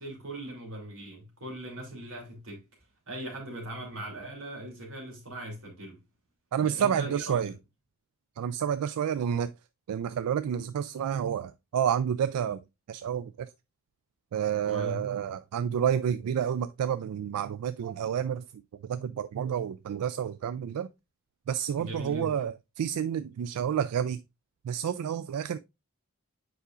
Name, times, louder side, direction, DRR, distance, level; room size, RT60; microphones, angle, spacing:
voice 1, 0.0-2.7 3.1-6.0 6.6-7.6 10.9-11.0 14.6-15.0 21.8-22.4, right 1 dB, 70° right, 2.8 m, -39 dB
voice 2, 6.5-7.5 8.4-9.5 9.9-12.6 12.9-13.5 14.3-18.4 18.8-20.9 21.5-22.5 22.8-24.2 24.6-25.6, right 8 dB, 90° right, 0.3 m, -29 dB
8.2 x 4.9 x 2.4 m
head